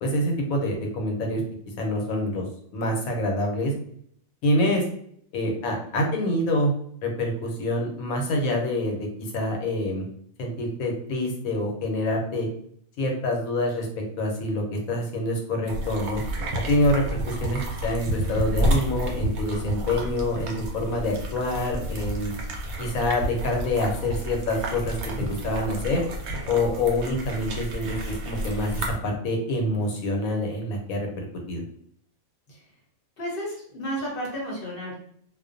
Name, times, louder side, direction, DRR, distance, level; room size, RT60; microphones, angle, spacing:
voice 1, 0.0-1.4 1.8-2.5 2.7-3.7 4.4-4.8 5.3-6.7 7.0-10.0 10.4-12.5 13.0-16.2 16.7-22.3 22.8-26.0 26.5-31.6, left 1 dB, 80° left, 2 dB, 1.1 m, -26 dB
sound 1, 15.7-29.0, right 1 dB, 90° right, 1.1 m, -30 dB
voice 2, 33.2-35.0, equal, 50° left, -3 dB, 0.8 m, -32 dB
2.4 x 2.2 x 2.5 m, 0.65 s
omnidirectional pair, 1.5 m